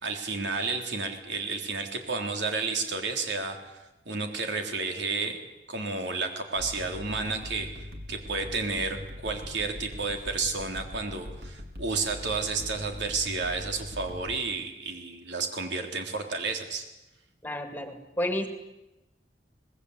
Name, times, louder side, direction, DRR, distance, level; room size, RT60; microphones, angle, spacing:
voice 1, 0.0-3.6 4.0-5.4 5.7-16.8, right 4 dB, 75° right, 4 dB, 3.5 m, -31 dB
sound 1, 6.5-14.4, left 1 dB, 55° right, 3.4 m, -42 dB
voice 2, 17.4-18.5, left 1 dB, 10° left, 6 dB, 2.1 m, -31 dB
25.0 x 20.0 x 8.1 m, 0.98 s
head